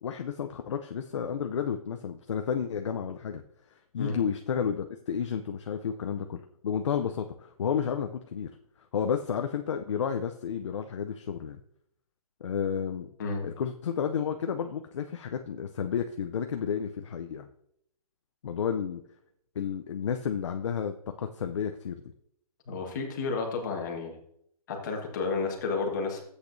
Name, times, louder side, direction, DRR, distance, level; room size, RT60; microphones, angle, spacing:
voice 1, 0.0-3.4 3.9-8.5 8.9-11.6 12.4-13.1 13.4-17.5 18.4-19.0 19.6-22.0, left 7 dB, 50° left, 6 dB, 0.5 m, -31 dB
voice 2, 22.7-24.2 24.7-26.2, left 4 dB, 30° left, 1 dB, 1.5 m, -31 dB
13.0 x 8.2 x 2.6 m, 0.71 s
hypercardioid pair, 180°, 19 cm